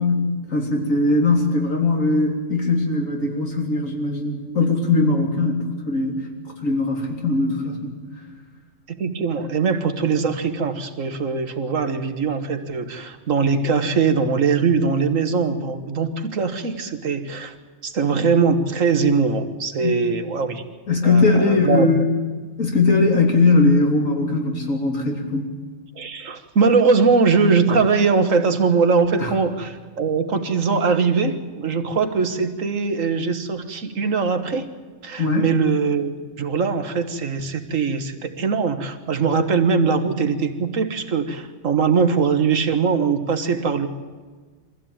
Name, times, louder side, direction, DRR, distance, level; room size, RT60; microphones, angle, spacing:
voice 1, 0.0-6.2 6.6-8.0 19.8-20.0 20.9-22.1 22.6-25.5 29.2-29.3 35.2-35.5, left 3 dB, 85° left, 1 dB, 3.6 m, -20 dB
voice 2, 8.9-17.6 17.8-20.6 21.0-21.9 26.0-34.7 35.0-43.9, right 5 dB, 75° right, 8 dB, 1.8 m, -21 dB
23.5 x 15.5 x 8.8 m, 1.4 s
omnidirectional pair, 1.3 m